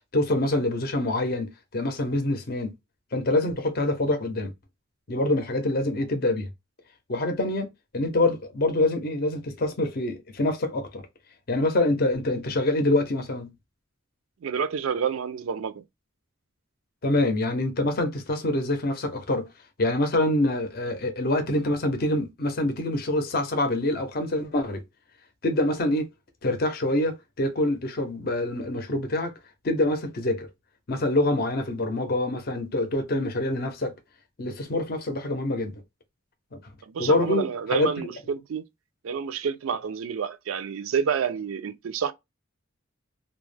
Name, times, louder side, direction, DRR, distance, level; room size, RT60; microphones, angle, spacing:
voice 1, 0.1-2.7 3.1-4.5 5.1-6.5 7.1-7.7 7.9-11.0 11.5-13.5 17.0-19.5 19.8-24.8 25.4-26.1 26.4-29.3 29.6-30.5 30.9-33.9 34.4-35.7 36.5-36.6 37.0-37.9, left 1 dB, 45° left, 0.5 m, -25 dB
voice 2, 14.4-15.8 36.9-38.6 39.0-42.1, right 7 dB, 80° right, 0.4 m, -29 dB
2.2 x 2.0 x 3.2 m
head